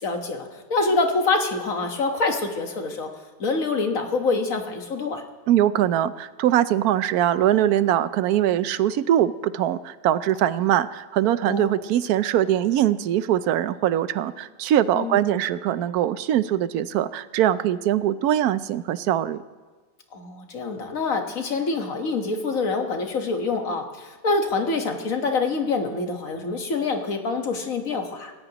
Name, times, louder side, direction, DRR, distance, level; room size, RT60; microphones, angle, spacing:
voice 1, 0.0-3.1 3.4-5.2 11.5-11.7 15.0-15.2 20.1-28.3, left 3 dB, 65° left, 4 dB, 1.8 m, -26 dB
voice 2, 5.5-19.4, right 11 dB, 90° right, 15 dB, 1.1 m, -22 dB
27.0 x 14.5 x 3.0 m, 1.4 s
omnidirectional pair, 1.5 m